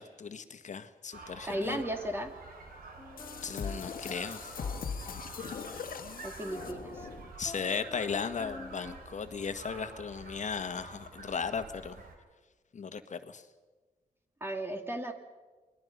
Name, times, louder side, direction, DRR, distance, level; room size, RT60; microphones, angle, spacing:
voice 1, 0.0-1.8 3.4-4.5 7.4-12.0 12.7-13.4, left 6 dB, 55° left, 9 dB, 1.5 m, -36 dB
sound 1, 1.1-12.2, right 3 dB, 85° right, 3.2 m, -49 dB
voice 2, 1.5-2.3 6.2-7.1 14.4-15.1, right 1 dB, 15° right, 4 dB, 2.4 m, -35 dB
sound 2, 3.0-6.0 6.5-9.0, left 3 dB, 25° left, 3.2 m, -48 dB
sound 3, 3.2-7.3, left 6 dB, 75° left, 1.6 m, -40 dB
28.0 x 20.5 x 5.5 m, 1.3 s
cardioid pair, 70°, 15 cm